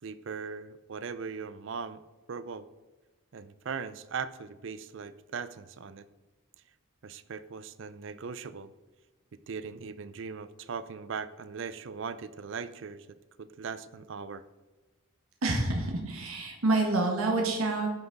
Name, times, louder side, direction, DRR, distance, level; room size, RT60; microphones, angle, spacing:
voice 1, 0.0-2.0 2.3-2.7 3.3-6.1 7.0-8.7 9.5-13.1 13.4-14.4, right 5 dB, 60° right, 15 dB, 0.5 m, -39 dB
voice 2, 15.4-17.9, right 2 dB, 85° right, 1 dB, 1.5 m, -27 dB
10.5 x 6.0 x 4.0 m, 1.2 s
head